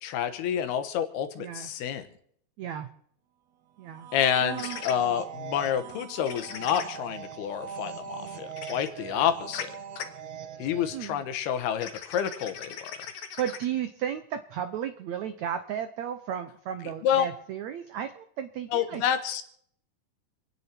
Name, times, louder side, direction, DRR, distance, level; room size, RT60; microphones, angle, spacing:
voice 1, 0.0-2.1 4.1-9.7 10.6-13.0 17.0-17.3 18.7-19.5, left 9 dB, 85° left, 10 dB, 3.2 m, -28 dB
voice 2, 1.4-1.7 2.6-2.9 3.8-4.1 4.4-4.8 10.9-11.2 13.4-19.0, right 9 dB, 85° right, 9 dB, 1.5 m, -34 dB
sound 1, 3.8-11.2, right 7 dB, 70° right, 1.7 m, -41 dB
sound 2, 4.6-4.9 6.2-6.8 8.6-8.9 9.5-9.6 9.9-10.0 11.8-13.6, left 7 dB, 60° left, 1.8 m, -38 dB
28.5 x 9.9 x 4.5 m, 0.65 s
omnidirectional pair, 4.5 m